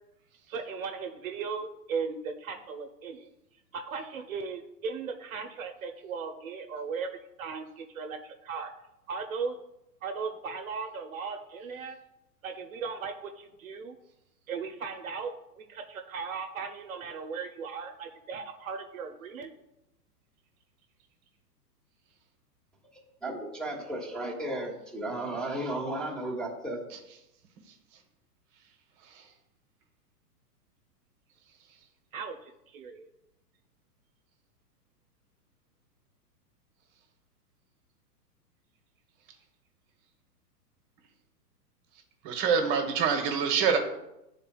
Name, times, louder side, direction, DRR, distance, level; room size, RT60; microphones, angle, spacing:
voice 1, 0.5-3.3 3.7-8.7 9.1-9.6 10.0-12.0 12.4-14.0 14.5-19.5 32.1-33.1, right 5 dB, 60° right, 5 dB, 0.8 m, -37 dB
voice 2, 23.2-26.8, right 1 dB, ahead, -1 dB, 1.2 m, -34 dB
voice 3, 42.2-43.8, right 6 dB, 35° right, 4 dB, 1.1 m, -26 dB
11.0 x 3.9 x 2.3 m, 0.88 s
hypercardioid pair, 115°, 48 cm